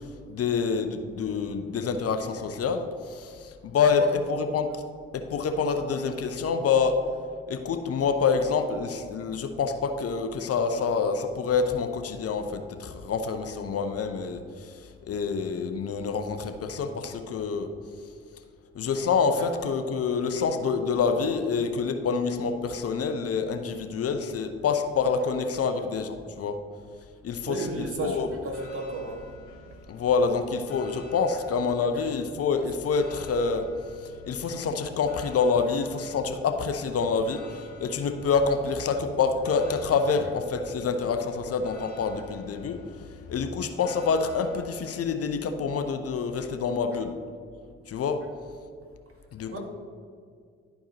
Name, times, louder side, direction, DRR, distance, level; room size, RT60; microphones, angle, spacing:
voice 1, 0.3-4.8 5.1-7.0 7.5-17.7 18.7-26.6 27.2-28.3 29.9-33.7 34.0-42.8 43.3-47.2 47.9-48.2 49.3-49.6, left 5 dB, 50° left, 7 dB, 0.7 m, -27 dB
voice 2, 3.8-4.4 27.5-29.2 31.9-32.0 49.5-49.6, right 2 dB, 45° right, 1 dB, 1.6 m, -34 dB
sound 1, 27.6-44.9, left 2 dB, 70° left, 1.8 m, -48 dB
11.5 x 4.6 x 2.9 m, 2.1 s
hypercardioid pair, 40°, 30 cm